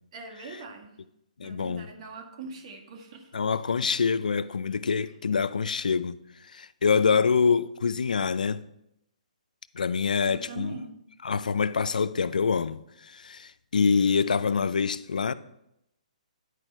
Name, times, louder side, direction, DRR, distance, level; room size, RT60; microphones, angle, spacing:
voice 1, 0.1-1.0 1.4-3.3 10.3-10.9, right 4 dB, 50° right, 1.4 m, -42 dB
voice 2, 1.4-1.9 3.3-8.6 9.7-10.7 11.2-15.3, left 5 dB, 85° left, 0.4 m, -26 dB
10.0 x 4.8 x 4.4 m
hypercardioid pair, 145°, 4 cm